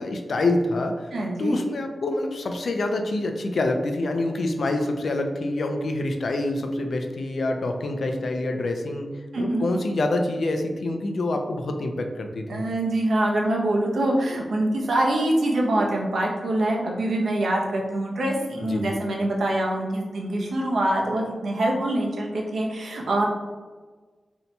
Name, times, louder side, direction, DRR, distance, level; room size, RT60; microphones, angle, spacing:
voice 1, 0.0-1.1 1.4-9.1 9.4-12.6 18.6-18.9, left 2 dB, 65° left, 5 dB, 0.4 m, -26 dB
voice 2, 1.1-1.6 9.3-9.6 12.5-23.3, right 1 dB, 80° right, -1 dB, 0.6 m, -24 dB
2.7 x 2.2 x 4.0 m, 1.3 s
wide cardioid pair, 150°, 0 cm